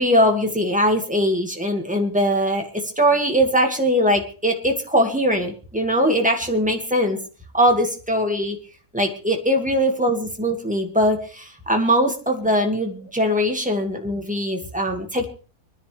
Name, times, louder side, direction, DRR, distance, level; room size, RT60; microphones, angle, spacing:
voice 1, 0.0-2.7 3.0-7.2 7.5-8.6 8.9-15.2, equal, 5° right, 2 dB, 2.0 m, -21 dB
26.5 x 10.0 x 3.4 m, 0.38 s
omnidirectional pair, 1.5 m